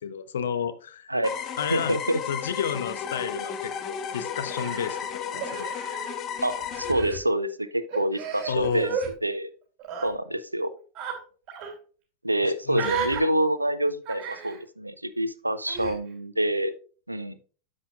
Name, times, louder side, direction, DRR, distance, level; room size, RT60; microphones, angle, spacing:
voice 1, 0.0-1.1 1.6-2.0 2.3-5.0 5.3-5.7 8.5-9.0 12.4-12.9, left 7 dB, 65° left, 11 dB, 0.8 m, -31 dB
voice 2, 1.1-2.2 6.4-8.9 9.2-9.5 10.0-10.7 12.2-16.7 17.1-17.4, right 1 dB, 85° right, 13 dB, 0.6 m, -27 dB
sound 1, 1.2-6.9, left 8 dB, 30° left, 0.9 m, -34 dB
Human voice, 4.5-6.3 6.6-7.2 7.9-9.1 9.8-10.1 10.9-11.2 11.5-11.7 12.7-13.2 14.0-14.6 15.7-15.9, right 6 dB, 35° right, 2.9 m, -33 dB
10.0 x 7.5 x 2.4 m, 0.40 s
figure-of-eight pair, 90°, 0 cm